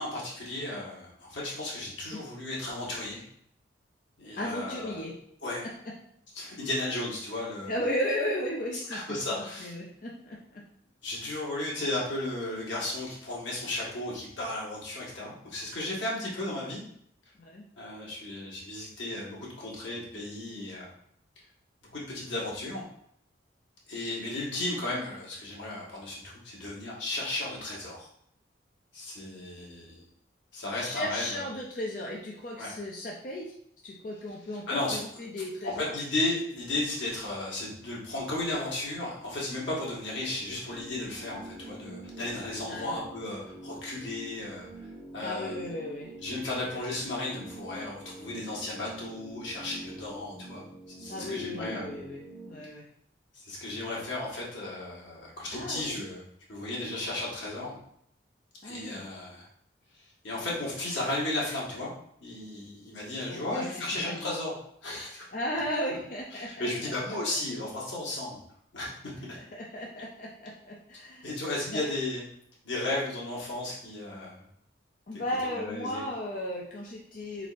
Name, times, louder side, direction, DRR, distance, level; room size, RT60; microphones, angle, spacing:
voice 1, 0.0-3.2 4.2-5.0 5.4-5.7 6.3-7.7 8.9-9.7 11.0-16.8 17.8-20.9 21.9-22.8 23.9-28.1 28.9-30.0 30.5-31.5 32.6-32.7 34.7-35.0 35.6-44.7 45.1-45.6 46.2-50.6 51.0-51.9 53.3-56.2 56.5-57.8 58.6-59.5 60.2-61.9 62.2-64.5 64.8-65.2 66.3-68.4 68.7-68.9 69.2-69.4 71.2-72.2 72.6-74.5 75.1-76.0, left 2 dB, 85° left, -5 dB, 1.5 m, -34 dB
voice 2, 4.4-5.2 5.6-6.0 7.7-10.6 17.4-17.7 30.7-33.5 33.8-35.9 42.7-43.0 45.2-46.1 51.1-52.2 52.5-52.9 55.5-56.0 58.6-59.0 63.3-64.3 65.3-66.9 69.1-71.3 71.7-71.9 75.1-77.5, left 1 dB, 45° left, -2 dB, 0.5 m, -35 dB
sound 1, 40.1-52.5, right 1 dB, 5° left, 1.7 m, -46 dB
4.0 x 4.0 x 2.5 m, 0.68 s
head